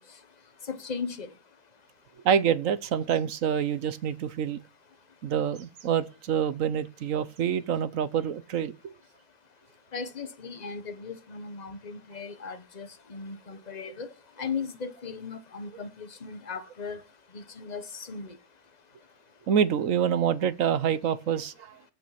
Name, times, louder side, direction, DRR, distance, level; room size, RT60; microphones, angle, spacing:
voice 1, 0.7-1.3 9.9-14.1 14.4-17.0 17.3-18.4, left 5 dB, 30° left, 1.2 m, -37 dB
voice 2, 2.2-4.6 5.2-8.9 19.5-21.7, right 8 dB, 60° right, 1.1 m, -26 dB
15.5 x 5.7 x 5.8 m
omnidirectional pair, 1.8 m